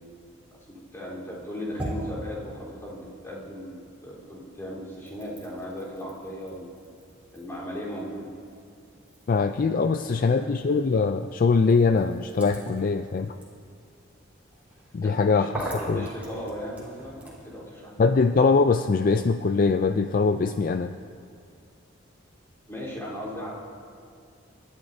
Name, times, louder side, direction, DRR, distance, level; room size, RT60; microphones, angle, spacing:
voice 1, 0.7-6.7 7.3-8.3 10.2-10.4 15.0-18.0 22.7-23.5, equal, 15° left, -7 dB, 3.6 m, -37 dB
sound 1, 1.2-3.9 4.2-17.5, right 1 dB, 10° right, 3.9 m, -43 dB
voice 2, 9.3-13.4 14.9-15.5 15.9-16.0 18.0-21.0, left 4 dB, 45° left, 8 dB, 0.3 m, -22 dB
28.0 x 12.5 x 2.7 m, 2.3 s
head